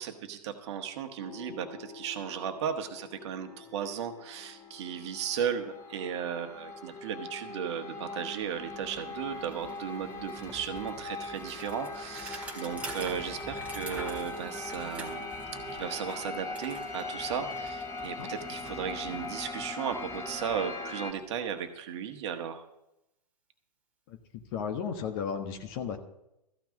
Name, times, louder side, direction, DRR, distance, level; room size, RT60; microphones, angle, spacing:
voice 1, 0.0-15.3 15.7-22.6, right 8 dB, 40° right, 6 dB, 1.4 m, -35 dB
sound 1, 1.2-21.1, left 3 dB, 15° left, 1.5 m, -41 dB
Bicycle, 8.0-8.1 8.4-21.3, right 2 dB, 5° right, 1.8 m, -47 dB
voice 2, 24.5-26.0, left 7 dB, 35° left, 6 dB, 1.3 m, -34 dB
14.0 x 6.0 x 8.6 m, 0.86 s
figure-of-eight pair, 115°, 21 cm